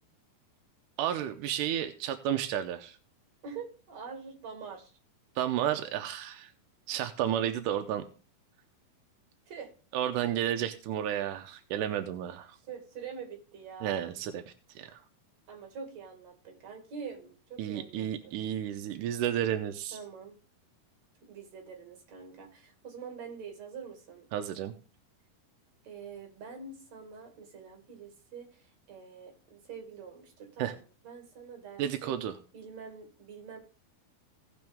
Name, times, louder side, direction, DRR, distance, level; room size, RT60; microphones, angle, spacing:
voice 1, 1.0-3.0 5.4-6.5 6.9-8.0 9.9-12.6 13.8-15.0 17.6-20.0 24.3-24.7 30.6-30.8 31.8-32.3, right 10 dB, 80° right, 7 dB, 1.9 m, -32 dB
voice 2, 3.4-4.9 9.5-9.7 12.7-14.0 15.5-18.4 19.9-20.3 21.2-24.3 25.8-30.8 31.0-32.2 32.5-33.6, right 6 dB, 50° right, 3 dB, 3.3 m, -45 dB
17.0 x 6.2 x 3.5 m, 0.36 s
omnidirectional pair, 4.4 m